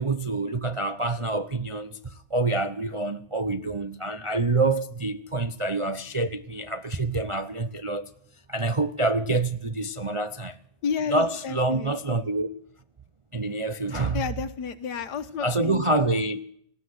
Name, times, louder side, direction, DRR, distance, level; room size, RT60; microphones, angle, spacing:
voice 1, 0.0-8.1 8.5-10.6 11.1-12.5 13.3-14.2 15.4-16.4, right 2 dB, 35° right, 0.5 m, -27 dB
voice 2, 10.8-12.3 14.1-15.8, left 6 dB, 80° left, 1.8 m, -32 dB
19.5 x 14.0 x 9.7 m
omnidirectional pair, 1.8 m